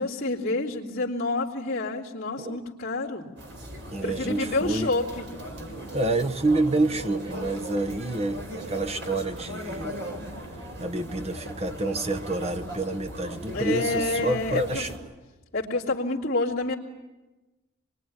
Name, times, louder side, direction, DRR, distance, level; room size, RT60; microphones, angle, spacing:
voice 1, 0.0-3.2 4.0-5.2 13.5-14.9 15.5-16.7, left 2 dB, 45° left, -8 dB, 3.0 m, -28 dB
sound 1, 3.4-15.0, right 1 dB, 60° right, 5.7 m, -38 dB
voice 2, 3.9-5.0 5.9-10.0 10.8-14.9, right 2 dB, 30° right, 7 dB, 1.1 m, -28 dB
26.0 x 22.0 x 9.9 m, 1.1 s
head